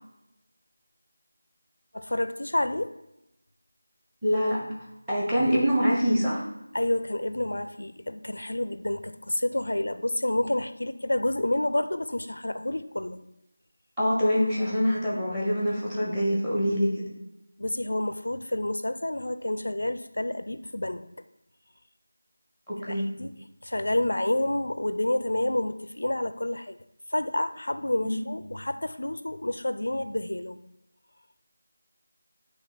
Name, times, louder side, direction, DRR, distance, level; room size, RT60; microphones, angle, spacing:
voice 1, 1.9-2.9 6.7-13.2 17.6-21.0 22.9-23.3 23.6-26.8 27.1-30.6, left 1 dB, 70° left, 11 dB, 0.4 m, -29 dB
voice 2, 4.2-4.6 5.1-6.4 14.0-17.0 22.7-23.1 28.0-28.2, equal, 5° right, -5 dB, 1.1 m, -25 dB
9.1 x 3.1 x 4.0 m, 0.88 s
figure-of-eight pair, 170°, 0 cm